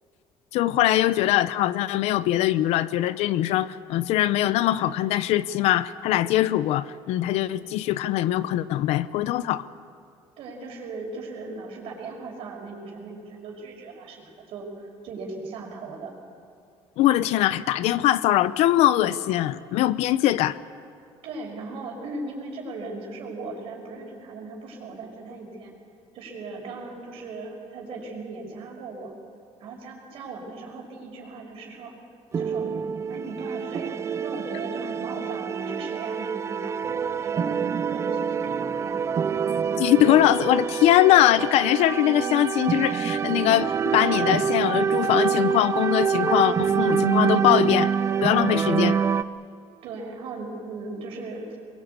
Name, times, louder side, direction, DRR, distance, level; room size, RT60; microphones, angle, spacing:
voice 1, 0.5-9.6 17.0-20.6 39.8-47.9 48.2-49.0, left 14 dB, 70° left, 16 dB, 0.8 m, -22 dB
voice 2, 10.4-16.1 21.0-25.7 26.1-29.1 29.6-31.9 32.4-32.7 33.1-39.1 49.8-51.6, right 3 dB, 60° right, 0 dB, 5.6 m, -38 dB
sound 1, 32.3-49.2, right 6 dB, 25° right, 0.5 m, -26 dB
23.5 x 22.5 x 8.3 m, 2.4 s
cardioid pair, 165°, 11 cm